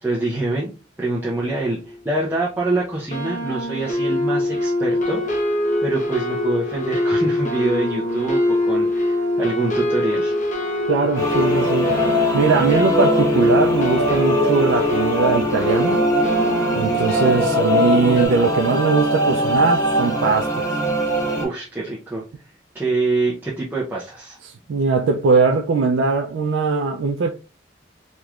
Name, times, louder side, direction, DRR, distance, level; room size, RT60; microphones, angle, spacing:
voice 1, 0.0-5.2 5.8-10.3 21.4-22.2 22.7-24.4, right 2 dB, 10° right, 0.6 m, -25 dB
sound 1, 1.9-2.0 2.2-2.6 3.1-18.3, left 1 dB, 40° left, 0.8 m, -23 dB
voice 2, 10.9-12.0 12.3-16.1 16.7-20.7 24.4-27.3, right 4 dB, 75° right, 0.4 m, -20 dB
sound 2, 11.1-21.4, equal, 15° left, 1.2 m, -21 dB
3.6 x 3.0 x 2.4 m
head